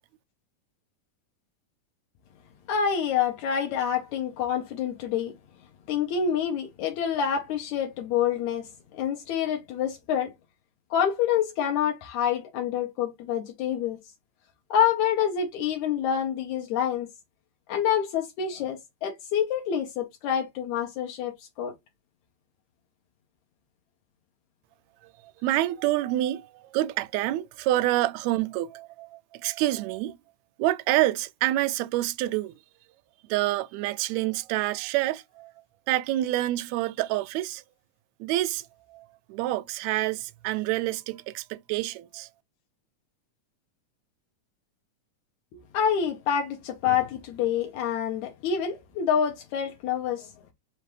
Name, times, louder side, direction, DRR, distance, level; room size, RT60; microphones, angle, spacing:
voice 1, 2.7-5.3 5.9-10.3 10.9-14.0 14.7-17.1 17.7-21.7 45.5-50.3, left 8 dB, 80° left, 2.1 m, -27 dB
voice 2, 25.4-30.2 30.6-32.5 33.3-35.5 35.9-37.6 38.2-42.3, right 15 dB, 80° right, 1.8 m, -27 dB
5.6 x 2.4 x 3.2 m
omnidirectional pair, 3.4 m